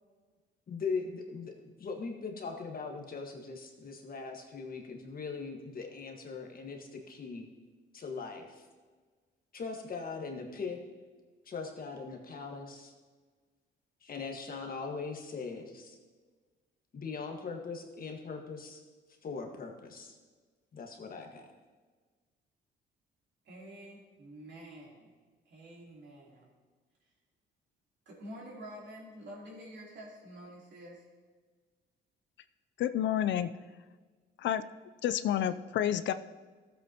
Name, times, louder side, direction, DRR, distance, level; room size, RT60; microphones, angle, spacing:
voice 1, 0.7-1.5 1.8-7.4 7.9-8.5 9.5-10.8 11.5-12.9 14.0-16.0 16.9-18.8 19.2-20.1 20.7-21.4, left 4 dB, 45° left, 2 dB, 1.5 m, -40 dB
voice 2, 23.4-25.1 25.4-26.5 28.0-31.0, equal, 65° right, -3 dB, 3.2 m, -48 dB
voice 3, 32.8-33.5 34.4-34.6 35.0-36.1, left 10 dB, 65° left, 12 dB, 0.4 m, -29 dB
14.0 x 7.9 x 2.9 m, 1.4 s
cardioid pair, 90°, 20 cm